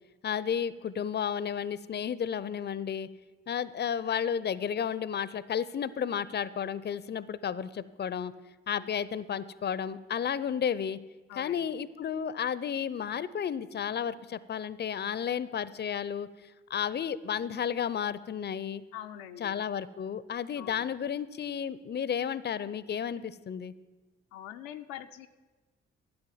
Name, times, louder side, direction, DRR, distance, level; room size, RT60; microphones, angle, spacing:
voice 1, 0.2-3.1 3.5-8.3 8.7-11.0 11.4-16.3 16.7-18.8 19.4-23.7, left 8 dB, 35° left, 18 dB, 0.6 m, -32 dB
voice 2, 11.3-11.7 18.9-19.6 20.6-20.9 24.3-25.3, left 11 dB, 80° left, 6 dB, 0.6 m, -44 dB
12.0 x 8.7 x 7.3 m, 1.2 s
hypercardioid pair, 40°, 30 cm